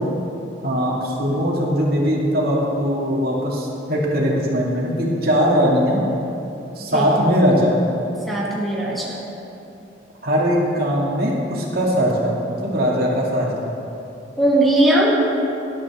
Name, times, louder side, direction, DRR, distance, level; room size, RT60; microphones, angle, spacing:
voice 1, 0.6-6.0 6.8-7.7 10.2-13.7, equal, 55° right, -4 dB, 2.5 m, -20 dB
voice 2, 6.9-7.3 8.3-9.2 14.4-15.2, right 1 dB, ahead, -6 dB, 1.8 m, -19 dB
19.0 x 12.0 x 3.7 m, 2.8 s
head